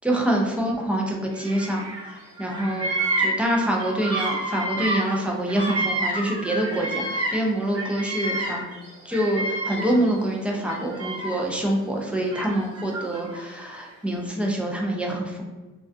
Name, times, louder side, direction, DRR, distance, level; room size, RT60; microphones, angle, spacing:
voice 1, 0.0-2.9 3.2-8.6 9.0-15.4, right 1 dB, 5° right, -1 dB, 0.5 m, -26 dB
Bird vocalization bird call bird song, 1.4-2.1 2.4-7.5 7.7-10.1 10.6-11.6 12.3-13.4, right 1 dB, 50° right, 1.0 m, -29 dB
2.4 x 2.2 x 2.5 m, 1.2 s
cardioid pair, 90°, 30 cm